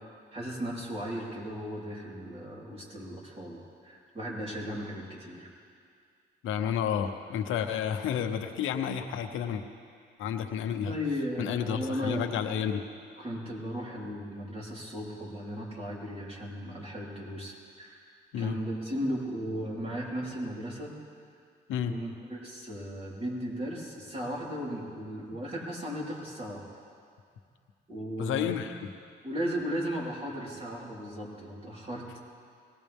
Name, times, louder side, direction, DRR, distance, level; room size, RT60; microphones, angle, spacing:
voice 1, 0.3-5.5 10.8-12.2 13.2-20.9 21.8-26.7 27.9-28.6 29.2-32.2, equal, 30° right, -5 dB, 4.3 m, -36 dB
voice 2, 6.4-9.6 10.2-10.9 11.4-12.8 18.3-18.6 21.7-21.9 28.2-28.9, left 8 dB, 90° left, 6 dB, 1.0 m, -31 dB
21.0 x 17.5 x 3.6 m, 2.2 s
cardioid pair, 90°, 20 cm